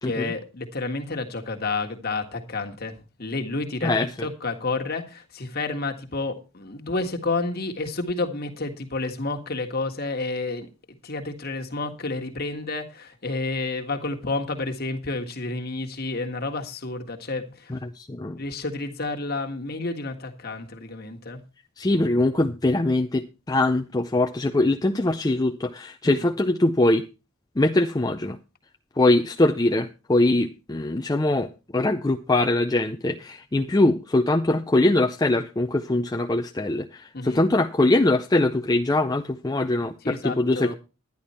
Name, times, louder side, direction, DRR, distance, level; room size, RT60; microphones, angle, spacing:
voice 1, 0.0-10.7 11.0-17.7 18.4-21.4 26.0-26.3 37.1-37.5 40.0-40.7, left 3 dB, 45° left, 3 dB, 1.6 m, -30 dB
voice 2, 3.8-4.3 17.7-18.4 21.8-27.0 27.6-28.4 29.0-40.7, left 2 dB, 20° left, 5 dB, 0.5 m, -22 dB
11.0 x 10.5 x 4.3 m, 0.31 s
head